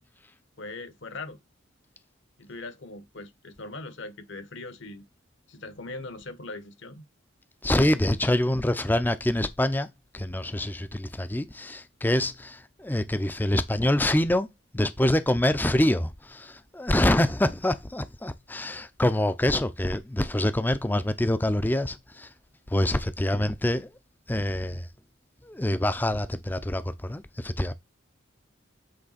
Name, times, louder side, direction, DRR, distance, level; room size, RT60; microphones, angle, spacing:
voice 1, 0.6-1.4 2.4-5.1 5.5-7.0, left 2 dB, 60° left, 1.1 m, -40 dB
voice 2, 7.6-9.9 10.1-14.5 14.7-22.3 22.7-23.9 24.3-24.9 25.4-27.7, left 1 dB, 10° left, 0.4 m, -25 dB
7.8 x 3.3 x 4.1 m
head